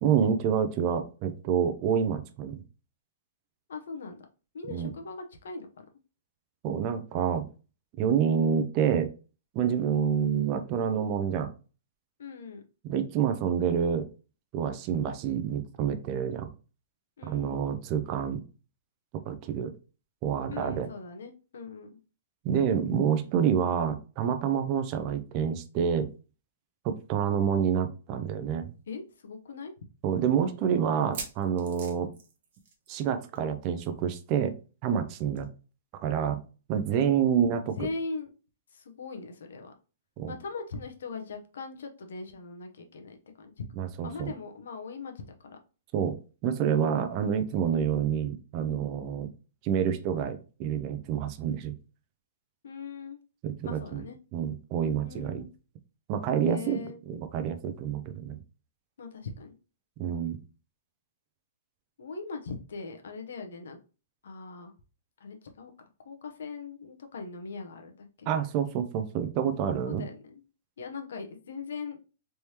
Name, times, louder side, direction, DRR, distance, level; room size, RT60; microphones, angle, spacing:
voice 1, 0.0-2.6 4.7-4.9 6.6-7.5 8.0-9.1 9.5-11.5 12.8-14.1 14.5-16.5 17.2-18.4 19.1-19.7 20.2-20.9 22.4-26.1 26.8-28.7 30.0-32.1 32.9-34.5 34.8-35.5 35.9-36.4 36.7-37.8 40.2-40.3 43.8-44.3 45.9-49.3 49.6-51.7 53.4-54.0 54.3-55.4 56.1-56.8 57.1-58.4 60.0-60.4 68.3-70.0, right 8 dB, 25° right, 7 dB, 0.4 m, -28 dB
voice 2, 3.7-4.2 4.5-5.7 12.2-12.6 17.2-17.6 20.5-22.0 28.9-29.7 37.8-38.3 38.7-39.7 40.3-43.5 44.0-45.6 52.6-53.2 53.6-54.2 55.0-55.5 56.4-57.0 59.0-59.5 62.0-63.8 64.2-64.7 65.2-65.7 66.0-68.3 69.9-70.4 70.8-72.0, left 4 dB, 75° left, 5 dB, 0.8 m, -40 dB
sound 1, 28.3-28.4 28.7-28.8 29.4-29.5 30.9-33.1 33.3-33.5 33.8-33.9 35.4-35.5, right 5 dB, 45° right, 1.0 m, -43 dB
3.4 x 3.1 x 2.8 m, 0.34 s
hypercardioid pair, 175°, 0 cm